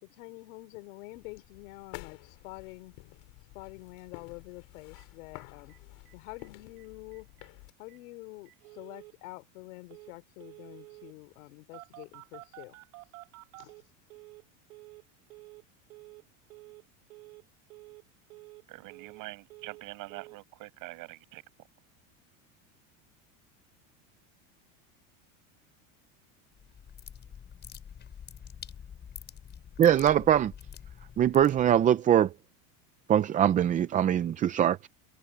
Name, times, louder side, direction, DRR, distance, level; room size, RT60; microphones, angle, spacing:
voice 1, 0.0-3.0 3.5-5.7 6.1-7.3 7.8-12.8 13.5-13.7, left 22 dB, 75° left, 3.9 m, -47 dB
sound 1, 1.1-7.7, left 25 dB, 55° left, 7.6 m, -50 dB
Telephone, 5.0-5.1 5.3-5.4 5.7-5.8 6.1-6.5 6.8-6.9 7.1-7.5 7.9-8.0 8.5-9.1 9.9-10.1 10.4-11.1 11.7-14.4 14.7-15.0 15.3-15.6 15.9-16.2 16.5-16.8 17.1-17.4 17.7-18.0 18.3-19.2 19.5-19.8 20.1-20.4, right 21 dB, 85° right, 4.5 m, -50 dB
voice 2, 18.7-21.4, right 21 dB, 50° right, 7.6 m, -44 dB
sound 2, 26.5-31.9, left 8 dB, 25° left, 6.0 m, -47 dB
voice 3, 29.8-30.5 31.2-32.3 33.1-34.9, right 10 dB, 20° right, 0.5 m, -22 dB
supercardioid pair, 150°, 41 cm